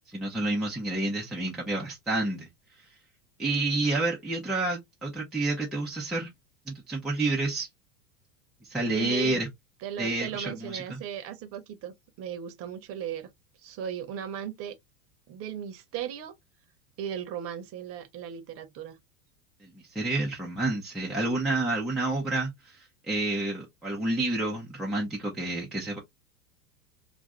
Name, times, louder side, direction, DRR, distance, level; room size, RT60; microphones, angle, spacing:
voice 1, 0.1-2.5 3.4-6.3 6.7-7.7 8.7-9.5 10.0-11.0 19.6-26.0, right 2 dB, ahead, 0.3 m, -29 dB
voice 2, 8.9-9.4 9.8-13.3 13.6-14.8 15.3-16.3 17.0-18.9, right 9 dB, 30° right, 0.7 m, -37 dB
2.5 x 2.5 x 3.2 m
figure-of-eight pair, 90°, 46 cm